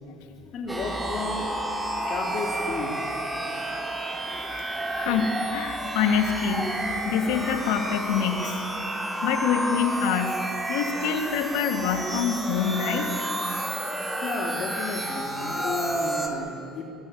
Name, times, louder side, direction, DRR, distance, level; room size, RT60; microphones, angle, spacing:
voice 1, 0.5-1.5 2.1-3.0 4.8-4.9 14.0-16.8, left 3 dB, 50° left, -1 dB, 3.8 m, -33 dB
sound 1, 0.7-16.3, right 1 dB, 15° right, 4.0 m, -31 dB
voice 2, 4.9-6.7 7.0-8.6 9.2-10.4 10.7-13.1, left 7 dB, 75° left, 4 dB, 3.2 m, -26 dB
24.5 x 21.0 x 9.0 m, 2.6 s
hypercardioid pair, 70°, 0 cm